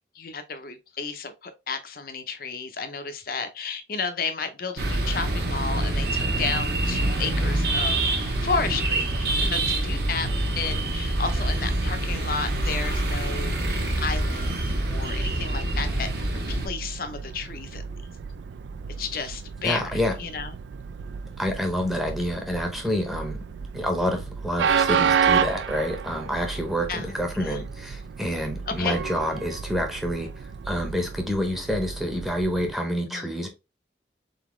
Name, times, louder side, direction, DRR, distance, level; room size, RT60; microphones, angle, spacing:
voice 1, 0.1-8.1 8.4-10.3 10.6-14.6 14.9-17.8 19.0-20.5 26.9-27.1 27.3-27.6 28.7-29.0 33.1-33.3, left 5 dB, 50° left, 0.7 m, -32 dB
sound 1, 4.8-16.7, right 2 dB, 55° right, 1.0 m, -26 dB
Train, 14.2-32.7, right 6 dB, 75° right, 0.3 m, -31 dB
voice 2, 19.6-20.1 21.4-23.4 23.7-30.3 30.6-33.5, equal, ahead, 0.8 m, -28 dB
4.0 x 4.0 x 3.1 m
head